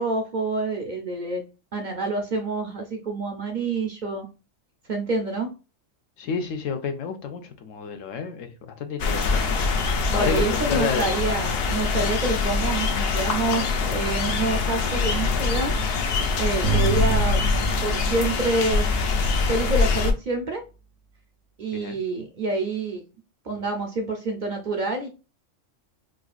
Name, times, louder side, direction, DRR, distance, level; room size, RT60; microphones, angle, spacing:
voice 1, 0.0-1.4 1.7-4.2 4.9-5.5 10.1-15.8 16.4-17.4 17.8-19.0 19.5-20.6 21.6-23.0 23.4-25.1, right 2 dB, 50° right, 0.6 m, -27 dB
voice 2, 6.2-9.6 10.1-11.1 21.7-22.0, left 6 dB, 85° left, 1.1 m, -30 dB
sound 1, 9.0-20.1, left 4 dB, 60° left, 0.7 m, -24 dB
sound 2, 16.6-20.0, right 7 dB, 70° right, 1.1 m, -30 dB
4.9 x 2.4 x 2.3 m
omnidirectional pair, 1.3 m